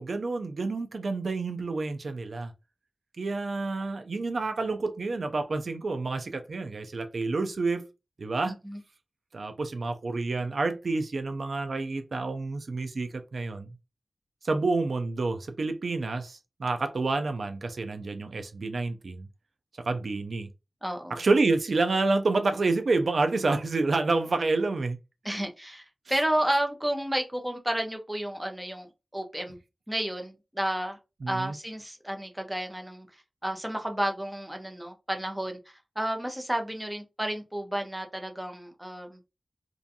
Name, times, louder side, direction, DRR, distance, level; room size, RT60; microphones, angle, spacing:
voice 1, 0.0-2.5 3.2-7.9 8.2-8.6 9.3-13.7 14.4-19.3 19.8-20.5 21.1-25.0 31.2-31.5, right 3 dB, 75° right, 0.3 m, -28 dB
voice 2, 8.4-8.8 20.8-21.2 25.2-29.6 29.9-31.0 31.3-33.1 33.4-39.2, right 1 dB, 10° right, 0.5 m, -31 dB
2.5 x 2.2 x 2.6 m
wide cardioid pair, 70°, 0 cm